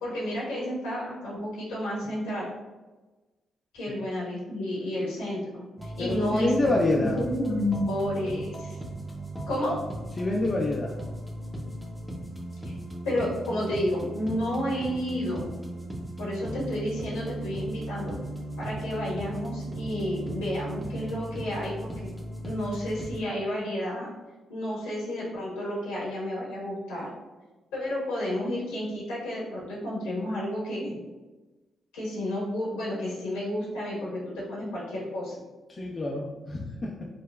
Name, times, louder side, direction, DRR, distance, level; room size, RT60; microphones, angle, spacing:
voice 1, 0.0-2.5 3.7-8.8 9.5-9.8 12.6-12.8 13.0-15.5 16.2-18.2 18.6-22.1 22.4-24.1 24.5-27.1 27.7-31.0 31.9-35.4, left 1 dB, 80° left, -6 dB, 1.2 m, -31 dB
sound 1, 5.8-23.2, right 1 dB, ahead, 0.8 m, -37 dB
voice 2, 6.0-7.2 10.2-10.9 35.7-37.1, left 2 dB, 40° left, -1 dB, 0.5 m, -27 dB
4.7 x 2.1 x 2.3 m, 1.2 s
hypercardioid pair, 40°, 0 cm